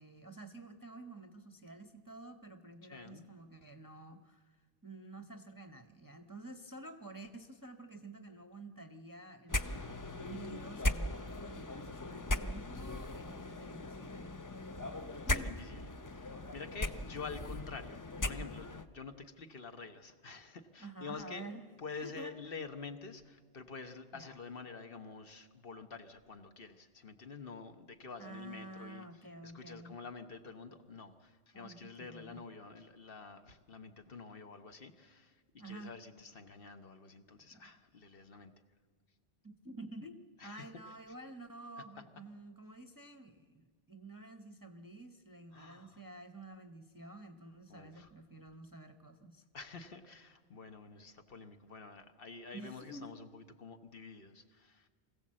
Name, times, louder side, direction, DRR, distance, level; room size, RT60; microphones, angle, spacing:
voice 1, 0.0-14.3 15.3-15.5 20.8-21.7 21.9-22.6 24.1-24.4 28.2-30.0 31.5-32.4 35.6-36.0 37.5-37.7 39.4-49.4 52.5-53.2, right 2 dB, 20° right, 6 dB, 0.7 m, -50 dB
voice 2, 2.9-3.2 9.6-10.0 15.2-21.5 21.8-29.1 29.4-38.5 40.4-40.6 45.5-46.0 47.7-48.1 49.5-54.9, left 4 dB, 55° left, 7 dB, 1.3 m, -48 dB
sound 1, 9.5-18.9, left 1 dB, 25° left, 0.4 m, -38 dB
24.0 x 16.0 x 7.5 m, 1.5 s
omnidirectional pair, 1.1 m